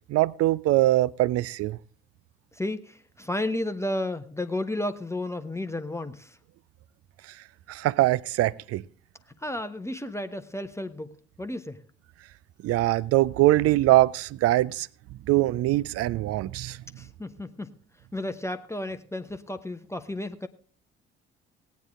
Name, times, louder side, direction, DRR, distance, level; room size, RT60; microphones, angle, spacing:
voice 1, 0.1-1.8 7.7-8.8 12.6-14.9 15.3-16.8, right 16 dB, 45° right, 0.5 m, -22 dB
voice 2, 2.5-6.4 9.4-11.8 17.0-17.7 18.1-20.5, left 1 dB, 10° left, 0.8 m, -32 dB
17.5 x 9.4 x 3.7 m
figure-of-eight pair, 45°, 33 cm